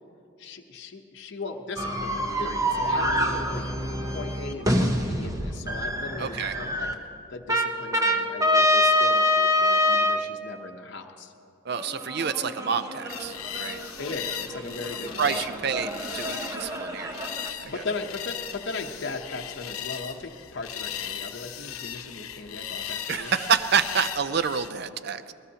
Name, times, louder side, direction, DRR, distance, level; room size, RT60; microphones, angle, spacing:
voice 1, 0.4-3.7 4.1-6.9 7.3-11.3 14.0-15.3 17.6-23.3, left 3 dB, 55° left, 2 dB, 0.8 m, -37 dB
sound 1, 1.8-6.9 7.5-10.2 11.7-17.5, left 1 dB, 15° right, 0.8 m, -26 dB
voice 2, 6.2-6.5 11.6-13.8 15.2-17.3 17.6-17.8 23.1-25.3, right 6 dB, 50° right, 12 dB, 0.5 m, -28 dB
sound 2, 13.1-24.7, left 9 dB, 85° left, 0.8 m, -37 dB
20.5 x 19.0 x 2.9 m, 2.5 s
head